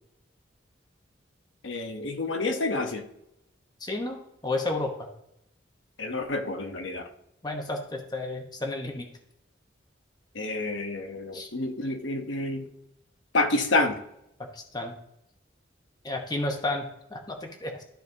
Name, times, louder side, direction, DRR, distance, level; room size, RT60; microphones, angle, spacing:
voice 1, 1.6-3.0 6.0-7.1 10.3-12.7 13.3-14.0, left 2 dB, 85° left, 4 dB, 0.9 m, -28 dB
voice 2, 3.8-5.1 7.4-9.1 11.3-11.5 14.5-15.0 16.0-17.8, left 2 dB, 20° left, 3 dB, 1.0 m, -32 dB
13.0 x 4.5 x 2.7 m, 0.81 s
head